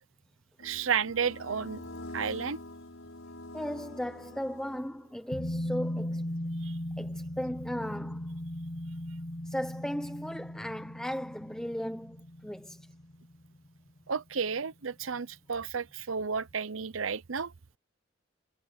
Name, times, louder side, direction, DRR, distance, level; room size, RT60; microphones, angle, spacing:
sound 1, 0.6-5.2, left 1 dB, 80° left, 6.0 m, -45 dB
voice 1, 0.6-1.8 2.1-2.6 6.6-6.7 14.1-17.5, right 6 dB, 80° right, 0.8 m, -32 dB
voice 2, 3.5-6.2 7.0-8.3 9.4-12.2 12.4-12.9, equal, 5° left, 0.7 m, -36 dB
sound 2, 5.3-14.4 14.7-14.8, left 1 dB, 45° left, 2.3 m, -38 dB
head